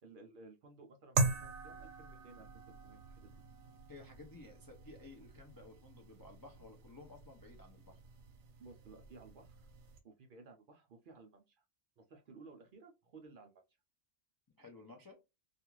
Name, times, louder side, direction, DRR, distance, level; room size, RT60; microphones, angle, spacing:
voice 1, 0.0-3.3 8.6-9.7 10.0-11.6 12.0-13.6, right 3 dB, 60° right, 0.6 m, -57 dB
sound 1, 1.2-10.0, right 3 dB, 90° right, 0.9 m, -41 dB
voice 2, 3.9-8.0 14.5-15.2, left 3 dB, 35° left, 0.3 m, -55 dB
2.4 x 2.4 x 3.0 m
omnidirectional pair, 1.2 m